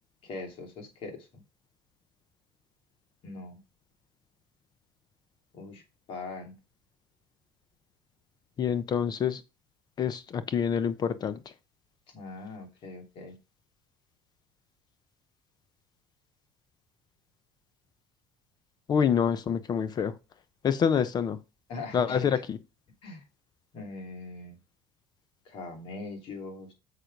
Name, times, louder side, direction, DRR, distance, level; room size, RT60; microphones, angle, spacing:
voice 1, 0.2-1.4 3.2-3.6 5.5-5.8 6.1-6.6 12.1-13.4 21.7-22.4 23.0-23.2 23.7-24.6 25.4-26.7, left 3 dB, 60° left, 2.9 m, -41 dB
voice 2, 8.6-9.4 10.0-11.4 18.9-20.1 20.6-21.4 21.9-22.6, left 7 dB, 40° left, 0.7 m, -26 dB
6.7 x 5.6 x 5.2 m
supercardioid pair, 95°, 10 cm